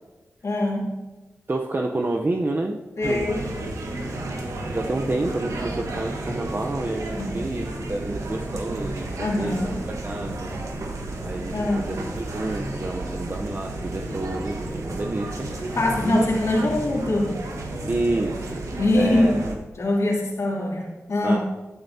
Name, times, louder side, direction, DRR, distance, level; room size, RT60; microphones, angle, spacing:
voice 1, 0.4-1.1 3.0-3.4 7.2-7.4 9.2-9.9 11.5-11.9 15.8-17.4 18.8-19.4 19.8-21.4, left 1 dB, 70° left, -3 dB, 2.9 m, -23 dB
voice 2, 1.5-3.3 4.7-9.1 9.4-10.5 11.2-15.5 16.0-16.3 17.9-18.7 18.9-19.4 21.2-21.4, right 2 dB, 40° right, 2 dB, 0.8 m, -29 dB
sound 1, 3.0-19.5, right 2 dB, 85° right, 1.4 m, -32 dB
14.0 x 9.1 x 2.8 m, 1.2 s
cardioid pair, 40°, 5 cm